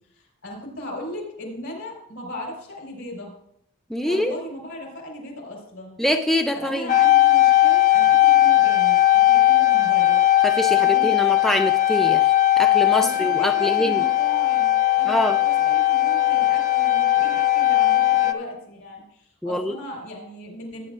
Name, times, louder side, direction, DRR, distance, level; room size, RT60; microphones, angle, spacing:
voice 1, 0.1-3.3 4.0-6.0 6.5-10.2 10.8-11.1 12.9-20.9, left 1 dB, 70° left, 0 dB, 4.1 m, -37 dB
voice 2, 3.9-4.4 6.0-6.9 10.4-14.0 15.1-15.4 19.4-19.8, left 1 dB, ahead, 5 dB, 0.4 m, -24 dB
sound 1, 6.9-18.3, left 15 dB, 40° left, 0.7 m, -18 dB
17.5 x 9.7 x 2.4 m, 0.75 s
head